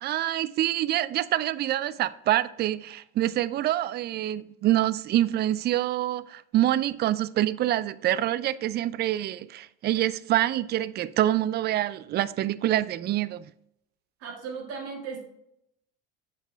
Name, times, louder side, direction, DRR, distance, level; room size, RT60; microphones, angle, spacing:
voice 1, 0.0-13.4, right 13 dB, 35° right, 0.4 m, -26 dB
voice 2, 14.2-15.2, right 5 dB, 50° right, 2.2 m, -36 dB
7.8 x 4.6 x 3.3 m
hypercardioid pair, 75°, 31 cm